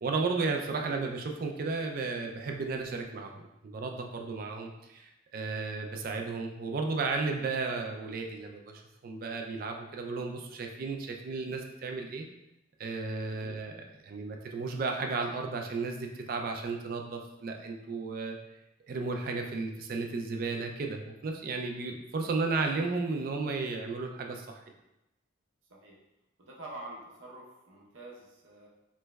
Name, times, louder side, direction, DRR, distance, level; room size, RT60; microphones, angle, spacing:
voice 1, 0.0-12.3 12.8-13.7 14.0-18.4 18.9-24.6, right 4 dB, 45° right, 3 dB, 0.3 m, -34 dB
voice 2, 13.2-13.6 25.7-26.0 26.4-28.7, right 2 dB, 75° right, -3 dB, 0.8 m, -47 dB
3.3 x 3.0 x 2.2 m, 0.91 s
head